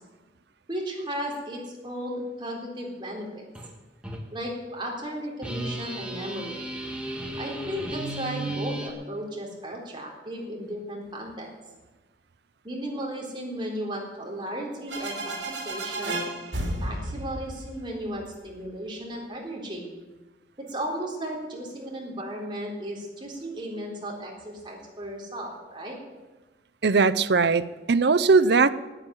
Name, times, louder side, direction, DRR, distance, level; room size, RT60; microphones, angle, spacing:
voice 1, 0.7-3.4 4.3-6.6 7.4-11.5 12.6-16.2 16.8-19.9 20.7-26.0, equal, 25° right, -1 dB, 3.8 m, -35 dB
sound 1, 3.5-3.7 4.0-4.2 5.4-8.9, right 1 dB, 5° right, 1.6 m, -34 dB
sound 2, 14.9-18.5, right 1 dB, 90° right, 2.7 m, -33 dB
voice 2, 26.8-28.7, right 4 dB, 65° right, 14 dB, 0.6 m, -20 dB
12.0 x 8.8 x 9.8 m, 1.2 s
head